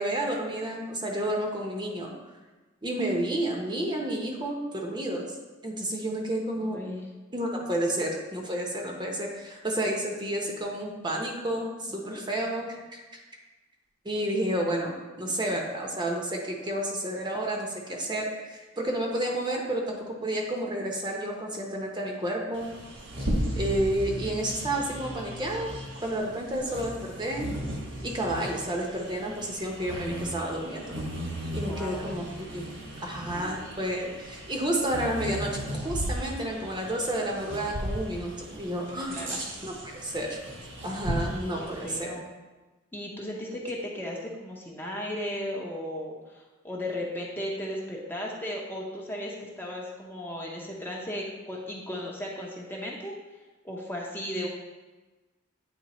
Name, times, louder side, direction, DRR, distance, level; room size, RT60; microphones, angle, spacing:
voice 1, 0.0-2.1 2.8-5.4 5.6-6.8 7.3-13.0 14.0-22.7 23.6-27.5 28.0-31.0 31.5-32.7 33.0-39.3 39.6-40.4 40.8-42.1, right 1 dB, 25° right, 0 dB, 0.8 m, -31 dB
voice 2, 6.7-7.0 12.0-12.2 31.6-32.0 39.0-39.4 41.6-42.3 42.9-53.1 53.6-54.5, left 1 dB, 10° left, -2 dB, 0.7 m, -36 dB
Bird vocalization bird call bird song, 22.5-42.0, equal, 70° right, 1.4 m, -36 dB
8.9 x 3.2 x 4.2 m, 1.2 s
head